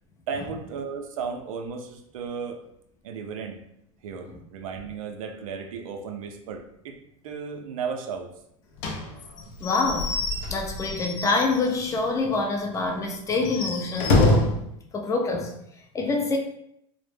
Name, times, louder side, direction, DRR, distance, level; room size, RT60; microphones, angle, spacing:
voice 1, 0.3-2.6 3.0-3.6 4.0-7.0 7.2-8.3, right 5 dB, 85° right, 4 dB, 0.4 m, -34 dB
Slam / Squeak / Wood, 8.8-12.0 12.3-12.4 12.7-12.8 13.3-14.7, left 2 dB, 75° left, 0.5 m, -26 dB
voice 2, 9.6-10.1 10.5-14.5 14.9-15.5 15.9-16.4, left 3 dB, 20° left, 2 dB, 0.4 m, -26 dB
2.0 x 2.0 x 3.1 m, 0.75 s
hypercardioid pair, 110°, 17 cm